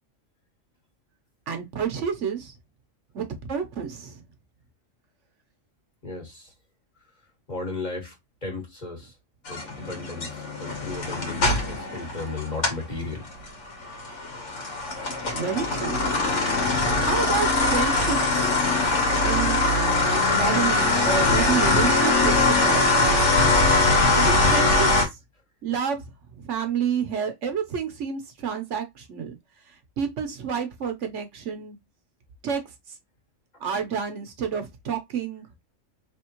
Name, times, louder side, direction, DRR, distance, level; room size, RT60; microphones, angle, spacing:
voice 1, 1.5-2.5 3.1-4.2 15.3-16.0 17.0-18.6 19.2-19.6 20.3-23.3 24.1-25.2 25.6-26.0 26.3-29.4 30.0-31.8 32.4-32.6 33.6-35.4, right 7 dB, 70° right, 1.2 m, -29 dB
voice 2, 6.0-6.5 7.5-8.1 8.4-9.1 9.5-13.2, left 3 dB, 35° left, 1.7 m, -35 dB
sound 1, 9.5-12.9 13.2-25.0, left 2 dB, 70° left, 1.7 m, -22 dB
4.3 x 3.5 x 2.9 m
omnidirectional pair, 1.3 m